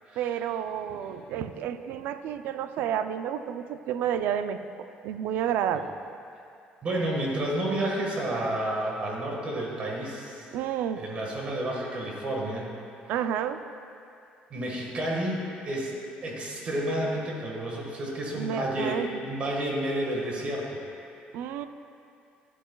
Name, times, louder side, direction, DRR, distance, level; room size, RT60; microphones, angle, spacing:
voice 1, 0.2-5.8 10.5-11.0 13.1-13.6 18.3-19.2 21.3-21.7, right 9 dB, 75° right, 10 dB, 0.4 m, -30 dB
voice 2, 6.8-10.5 11.0-12.7 14.5-20.8, right 1 dB, 40° right, -2 dB, 1.5 m, -30 dB
11.0 x 10.5 x 2.3 m, 2.5 s
cardioid pair, 140°, 3 cm